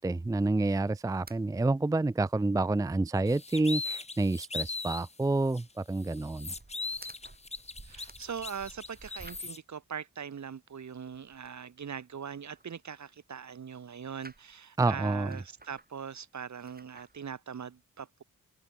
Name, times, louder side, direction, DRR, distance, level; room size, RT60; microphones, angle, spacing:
voice 1, 0.0-6.5 14.8-15.4, right 2 dB, 10° right, 0.5 m, -28 dB
sound 1, 1.3-1.4 1.7-1.8 2.1-2.2 2.6-2.7 3.0-3.6 3.9-9.7 10.2-11.6 12.1-13.4 13.7-14.7 15.2-16.2 16.5-17.2, right 3 dB, 30° right, 6.1 m, -55 dB
sound 2, 3.3-5.1 5.5-5.6 6.0-9.6, left 3 dB, 20° left, 0.8 m, -39 dB
voice 2, 7.8-18.2, right 7 dB, 55° right, 1.7 m, -41 dB
cardioid pair, 55°, 33 cm